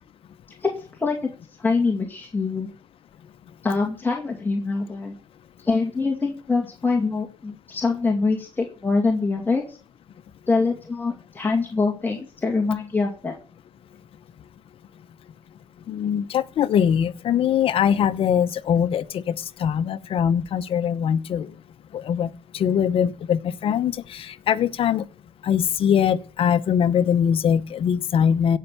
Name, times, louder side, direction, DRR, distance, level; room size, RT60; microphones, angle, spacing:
voice 1, 1.6-2.7 3.6-5.1 5.6-9.8 10.5-13.3, left 4 dB, 20° left, 2.2 m, -24 dB
voice 2, 15.9-19.3 19.6-21.5 21.9-25.1 25.4-28.6, left 8 dB, 65° left, 0.9 m, -22 dB
16.0 x 5.6 x 7.1 m
cardioid pair, 95°, 10 cm